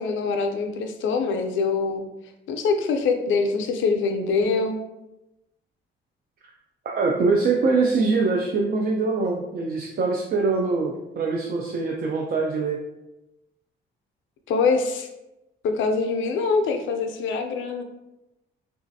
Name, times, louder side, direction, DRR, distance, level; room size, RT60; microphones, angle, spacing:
voice 1, 0.0-2.0 2.5-4.8 14.5-15.1 15.6-17.8, left 4 dB, 75° left, 5 dB, 0.4 m, -24 dB
voice 2, 6.9-12.8, right 4 dB, 50° right, 0 dB, 0.4 m, -23 dB
3.1 x 2.4 x 2.6 m, 0.95 s
cardioid pair, 90°, 20 cm